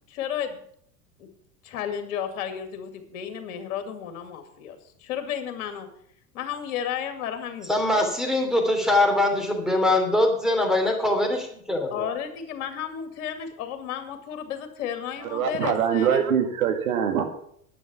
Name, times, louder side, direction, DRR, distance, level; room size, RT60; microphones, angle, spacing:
voice 1, 0.1-0.6 1.2-1.3 1.6-5.9 6.3-8.0 11.9-16.3, left 9 dB, 55° left, 7 dB, 2.2 m, -33 dB
voice 2, 7.7-12.1, left 1 dB, ahead, 4 dB, 2.9 m, -22 dB
voice 3, 15.3-17.2, right 8 dB, 65° right, 5 dB, 2.3 m, -23 dB
10.5 x 9.2 x 7.0 m, 0.67 s
figure-of-eight pair, 80°, 45 cm